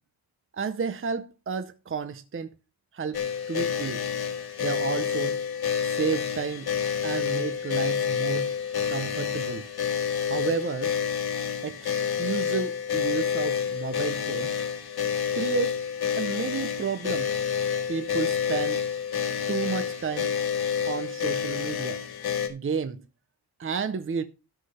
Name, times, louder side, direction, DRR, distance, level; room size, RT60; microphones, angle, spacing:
voice 1, 0.5-2.5 2.9-3.2 3.5-4.0 4.6-5.4 5.8-6.7 7.0-8.5 8.9-9.7 10.3-10.9 11.6-14.5 15.3-15.8 16.2-17.4 17.9-18.8 19.5-20.4 20.8-22.0 22.5-23.0 23.6-24.2, right 6 dB, 35° right, 0.7 m, -31 dB
sound 1, 3.1-22.5, left 7 dB, 70° left, 2.1 m, -28 dB
13.0 x 5.9 x 5.5 m
wide cardioid pair, 175°, 40 cm